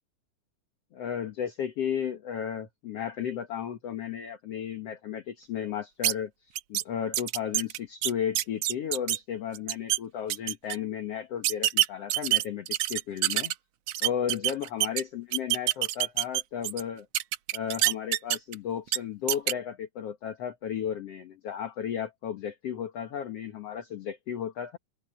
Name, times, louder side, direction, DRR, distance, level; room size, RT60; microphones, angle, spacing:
voice 1, 0.9-6.3 6.7-13.5 14.0-17.1 17.5-24.8, left 9 dB, 60° left, 2.2 m, -34 dB
sound 1, 6.0-6.1 6.6-6.8 7.1-9.2 9.5-10.0 10.3-10.8 11.4-13.5 13.9-15.0 15.3-16.8 17.1-18.5 18.9-19.0 19.3-19.5, right 14 dB, 70° right, 1.6 m, -26 dB
open air
omnidirectional pair, 3.6 m